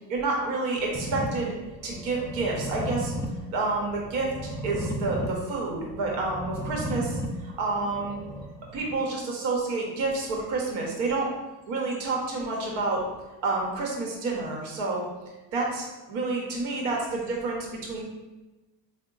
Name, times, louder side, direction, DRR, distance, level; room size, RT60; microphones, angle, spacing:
voice 1, 0.1-1.5 1.8-3.1 3.5-8.2 8.7-11.3 11.7-13.0 13.4-15.1 15.5-18.0, right 3 dB, 80° right, -1 dB, 0.9 m, -29 dB
sound 1, 0.9-8.9, equal, 5° left, 0.5 m, -35 dB
3.7 x 2.0 x 3.7 m, 1.1 s
supercardioid pair, 70°, 45 cm